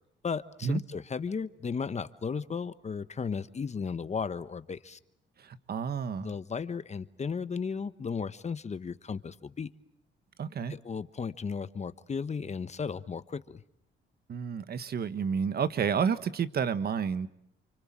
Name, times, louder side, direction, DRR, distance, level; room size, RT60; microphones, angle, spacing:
voice 1, 0.2-5.0 6.2-9.7 10.7-13.6, left 5 dB, 35° left, 13 dB, 1.2 m, -35 dB
voice 2, 5.4-6.3 10.4-10.7 14.3-17.3, right 6 dB, 50° right, 12 dB, 1.5 m, -30 dB
29.0 x 24.5 x 7.6 m, 0.77 s
cardioid pair, 90°, 20 cm